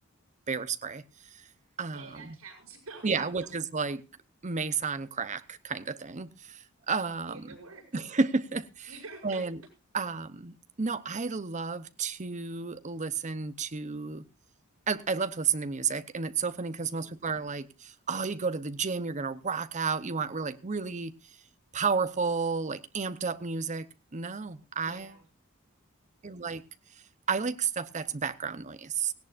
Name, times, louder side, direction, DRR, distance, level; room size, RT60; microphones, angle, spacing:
voice 1, 0.5-1.4 1.8-2.0 3.0-4.0 4.4-7.5 7.9-8.9 9.2-9.6 9.9-14.2 14.9-21.1 21.7-23.9 24.1-25.1 26.2-26.6 27.3-29.1, right 5 dB, 35° right, 0.8 m, -32 dB
voice 2, 1.9-3.5 7.3-7.9 8.9-9.4 16.9-17.2 24.8-25.2, right 3 dB, 80° right, 7.5 m, -47 dB
17.5 x 17.0 x 2.5 m
head